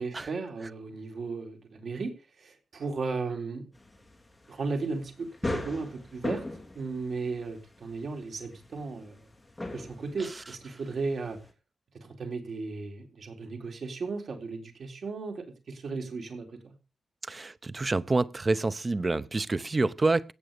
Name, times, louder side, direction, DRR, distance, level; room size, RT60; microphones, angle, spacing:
voice 1, 0.0-2.1 2.4-3.6 4.5-6.4 6.7-9.3 9.7-11.4 12.0-16.7, right 4 dB, 65° right, 4.0 m, -35 dB
sound 1, 3.7-11.5, left 2 dB, 10° left, 3.3 m, -40 dB
voice 2, 17.3-20.3, right 3 dB, 30° right, 0.7 m, -27 dB
17.0 x 6.4 x 6.8 m
wide cardioid pair, 125°, 0 cm